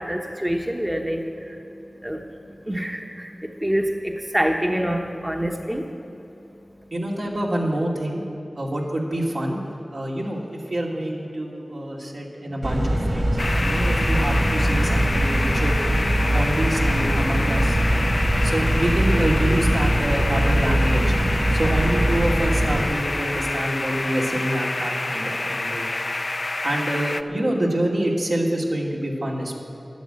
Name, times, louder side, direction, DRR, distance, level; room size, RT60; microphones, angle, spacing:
voice 1, 0.0-1.6 2.0-2.2 2.7-5.9, equal, 15° right, 2 dB, 1.0 m, -26 dB
voice 2, 6.9-8.2 8.5-9.6 9.9-15.8 16.3-18.0 18.4-21.2 21.5-25.9 26.6-29.5, right 1 dB, 75° right, -3 dB, 2.6 m, -26 dB
sound 1, 12.6-22.8, right 1 dB, 45° right, 2.3 m, -22 dB
sound 2, 13.4-27.2, left 2 dB, 45° left, 0.5 m, -28 dB
11.5 x 11.0 x 8.8 m, 3.0 s
wide cardioid pair, 70°, 0 cm